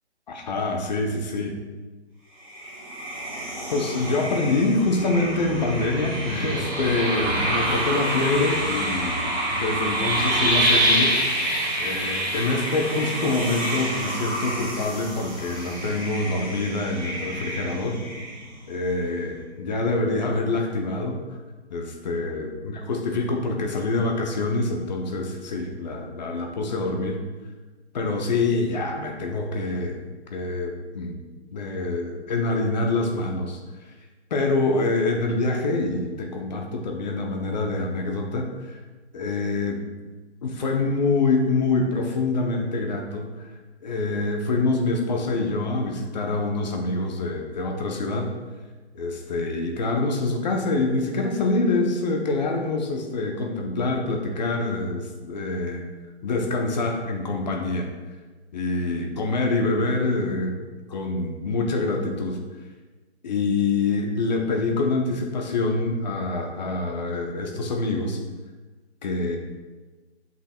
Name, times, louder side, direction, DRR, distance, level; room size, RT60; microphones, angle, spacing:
voice 1, 0.3-1.6 3.7-11.1 11.8-18.0 18.7-21.2 21.7-27.2 27.9-30.0 30.3-31.2 31.5-33.6 34.3-38.8 39.1-39.8 40.4-43.3 43.8-48.3 48.9-55.8 56.2-57.9 58.5-60.5 60.9-62.4 63.2-68.2 69.0-69.4, left 3 dB, 40° left, 2 dB, 1.0 m, -25 dB
sound 1, 2.4-18.7, right 1 dB, 5° right, 1.2 m, -27 dB
9.0 x 5.5 x 2.4 m, 1.3 s
figure-of-eight pair, 145°, 34 cm